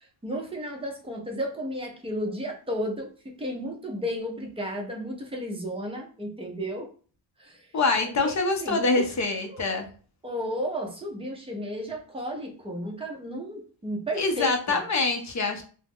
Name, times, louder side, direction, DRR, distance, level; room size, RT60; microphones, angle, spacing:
voice 1, 0.2-6.9 7.4-7.6 8.0-8.3 8.6-9.1 9.5-9.6 10.2-14.8, equal, 10° right, 0 dB, 0.6 m, -33 dB
voice 2, 7.7-9.8 14.2-15.6, left 3 dB, 40° left, 5 dB, 0.5 m, -25 dB
2.3 x 2.0 x 3.5 m, 0.40 s
cardioid pair, 130°, 46 cm